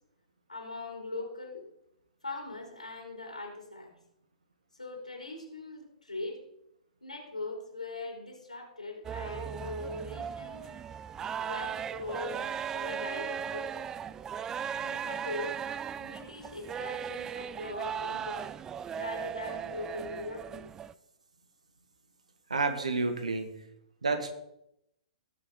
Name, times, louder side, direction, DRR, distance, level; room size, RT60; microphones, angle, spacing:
voice 1, 0.5-1.6 2.2-4.0 4.7-6.5 7.0-10.7 11.4-13.7 14.8-15.6 16.0-18.5 19.0-20.7, left 2 dB, 85° left, 0 dB, 3.7 m, -41 dB
sound 1, 9.0-20.9, right 8 dB, 15° right, 0.3 m, -37 dB
voice 2, 22.5-23.5 24.0-24.4, right 3 dB, 70° right, 7 dB, 1.9 m, -29 dB
18.5 x 7.4 x 3.9 m, 0.81 s
figure-of-eight pair, 115°, 4 cm